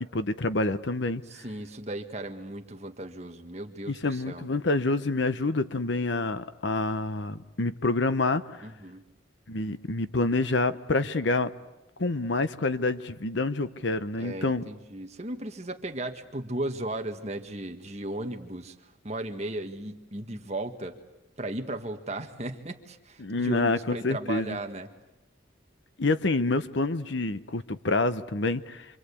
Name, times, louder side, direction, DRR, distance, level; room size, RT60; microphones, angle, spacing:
voice 1, 0.1-1.2 3.9-8.7 9.5-11.5 12.0-14.6 23.2-24.6 26.0-28.9, left 2 dB, 65° left, 12 dB, 1.0 m, -27 dB
voice 2, 1.3-4.5 8.6-9.0 14.2-18.7 19.0-21.0 21.4-24.9, right 1 dB, 35° right, 5 dB, 1.7 m, -36 dB
26.0 x 25.5 x 8.5 m, 0.98 s
head